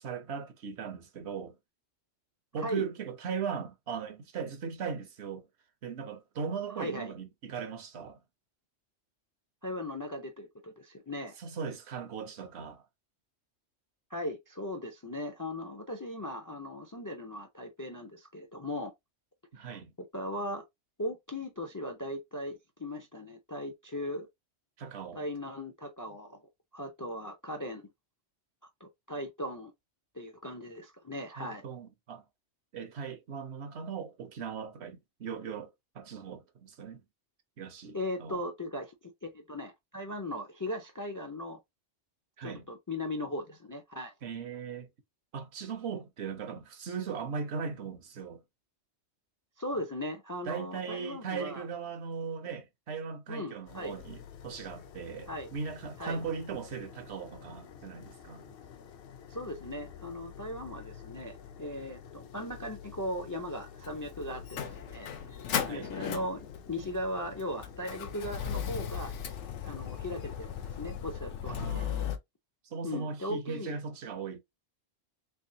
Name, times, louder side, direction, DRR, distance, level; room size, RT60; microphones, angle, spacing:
voice 1, 0.0-1.6 2.5-5.5 5.8-8.2 11.4-12.8 19.5-19.9 24.8-25.2 31.4-32.2 32.7-37.0 37.6-38.4 42.4-42.7 44.2-44.9 45.3-48.4 50.5-58.4 65.6-65.9 71.5-72.2 72.6-74.4, right 6 dB, 70° right, 1.0 m, -38 dB
voice 2, 6.8-7.1 9.6-11.4 14.1-18.9 19.6-20.6 21.0-24.3 25.1-26.4 26.7-27.8 28.8-29.7 30.1-31.6 37.9-41.6 42.4-44.1 49.6-51.7 53.3-54.0 55.3-55.5 56.0-56.2 59.3-65.4 65.7-69.1 69.6-71.9 72.8-73.8, left 1 dB, 30° left, 0.4 m, -38 dB
sound 1, 53.7-71.1, left 8 dB, 60° left, 0.7 m, -50 dB
Motor vehicle (road), 63.8-72.2, left 8 dB, 85° left, 0.9 m, -37 dB
3.5 x 3.2 x 2.7 m
omnidirectional pair, 1.2 m